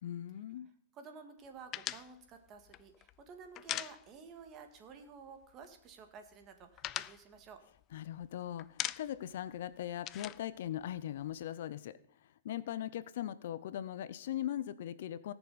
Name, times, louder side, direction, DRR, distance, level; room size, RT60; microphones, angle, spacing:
voice 1, 0.0-0.7 7.9-12.0 12.4-15.3, left 11 dB, 65° left, 16 dB, 0.6 m, -40 dB
voice 2, 0.9-7.6, right 5 dB, 30° right, 7 dB, 1.8 m, -52 dB
sound 1, 1.7-4.5 4.8-5.0 5.3-5.9 6.3-8.3 8.6-9.3 9.6-11.4, left 14 dB, 30° left, 0.3 m, -42 dB
18.5 x 7.0 x 4.2 m, 0.65 s
hypercardioid pair, 145°, 0 cm